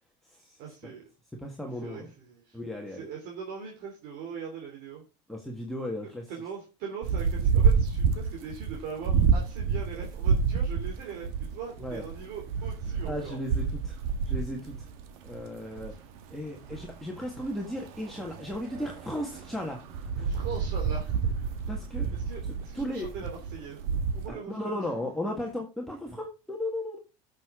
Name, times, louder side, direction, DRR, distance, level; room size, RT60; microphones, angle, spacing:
voice 1, 0.6-1.1 1.8-2.6 2.9-5.0 6.3-13.4 16.7-16.9 20.2-21.2 21.6-21.7 22.1-24.9, right 6 dB, 65° right, 0 dB, 3.0 m, -41 dB
voice 2, 1.4-2.1 2.5-3.1 5.3-6.3 11.8-12.0 13.0-14.0 14.3-14.9 15.2-15.9 16.3-19.8 20.2-20.3 21.7-22.1 22.4-23.1 24.3-27.0, left 1 dB, ahead, -1 dB, 1.7 m, -35 dB
sound 1, 7.0-24.3, right 6 dB, 85° right, 1.7 m, -29 dB
14.5 x 6.7 x 3.7 m, 0.30 s
supercardioid pair, 125°, 17 cm